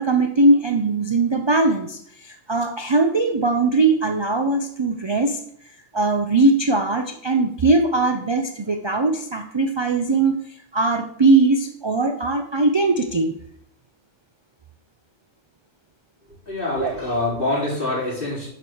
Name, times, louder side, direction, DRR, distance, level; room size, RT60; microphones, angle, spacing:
voice 1, 0.0-5.4 5.9-10.4 10.7-13.3 16.8-16.9, right 3 dB, 40° right, 5 dB, 0.4 m, -20 dB
voice 2, 16.5-18.5, left 2 dB, 40° left, -7 dB, 4.6 m, -25 dB
10.0 x 4.9 x 6.2 m, 0.68 s
omnidirectional pair, 1.4 m